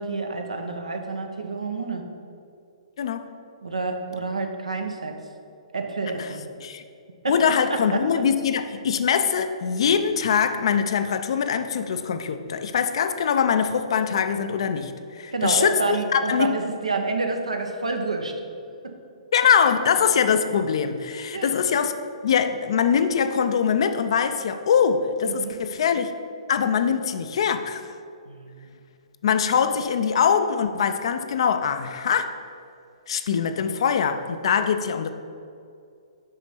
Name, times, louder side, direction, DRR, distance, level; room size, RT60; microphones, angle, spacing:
voice 1, 0.0-2.1 3.6-5.1 5.7-6.4 7.2-7.4 7.7-8.0 15.3-18.3 18.8-19.0 21.3-21.5 25.2-25.6 28.2-28.8, right 3 dB, 75° right, 4 dB, 0.9 m, -28 dB
voice 2, 3.0-3.3 6.2-6.3 6.6-6.8 7.3-16.5 19.3-21.9 22.2-26.1 26.5-27.8 29.2-32.4 33.1-35.1, left 7 dB, 55° left, 9 dB, 0.5 m, -23 dB
6.4 x 5.2 x 5.7 m, 2.4 s
figure-of-eight pair, 120°, 3 cm